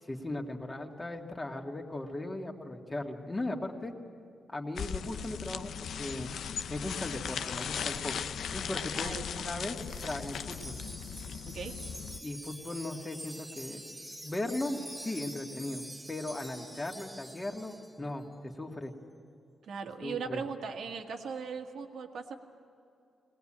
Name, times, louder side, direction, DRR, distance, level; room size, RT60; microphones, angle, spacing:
voice 1, 0.1-3.9 4.5-6.3 6.7-9.8 10.0-10.8 12.2-13.8 14.2-18.9 20.0-20.4, left 2 dB, 20° left, 2 dB, 2.2 m, -38 dB
sound 1, 4.8-12.2, left 7 dB, 75° left, 0.6 m, -38 dB
Wind chime, 9.8-18.0, right 1 dB, 10° right, 1.5 m, -46 dB
voice 2, 11.5-11.8 19.6-22.4, right 6 dB, 75° right, 4 dB, 1.9 m, -39 dB
22.0 x 19.0 x 8.9 m, 2.6 s
cardioid pair, 105°, 0 cm